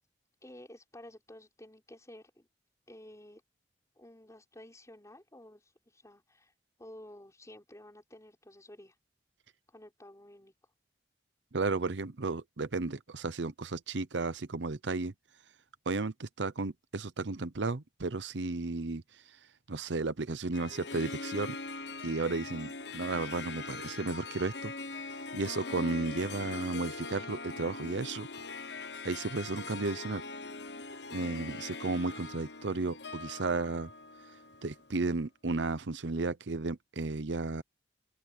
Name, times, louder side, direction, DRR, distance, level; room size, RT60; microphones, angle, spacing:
voice 1, 0.4-2.5 2.9-3.4 4.0-6.5 6.8-9.0 9.7-10.5, left 1 dB, 20° left, 5.9 m, -52 dB
voice 2, 11.5-15.1 15.9-19.0 19.7-21.6 22.0-24.7 25.3-28.3 29.0-30.2 31.1-33.9 34.6-37.6, right 3 dB, 85° right, 0.8 m, -33 dB
Harp, 20.5-35.0, left 3 dB, 70° left, 1.1 m, -42 dB
open air
head